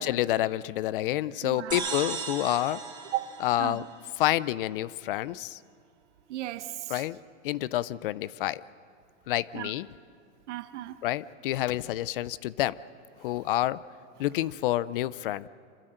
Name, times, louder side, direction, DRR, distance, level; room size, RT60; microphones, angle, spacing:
voice 1, 0.0-2.9 3.4-3.9 4.1-5.6 6.9-7.2 7.4-8.6 9.3-9.9 11.0-12.8 13.2-13.8 14.2-15.5, left 14 dB, 45° left, 0.5 m, -28 dB
voice 2, 1.4-1.8 3.1-3.8 6.3-7.0 9.5-9.7 10.5-11.0, right 14 dB, 60° right, 1.2 m, -35 dB
sound 1, 1.7-4.3, right 6 dB, 10° right, 2.6 m, -36 dB
26.5 x 15.0 x 7.7 m
supercardioid pair, 160°, 39 cm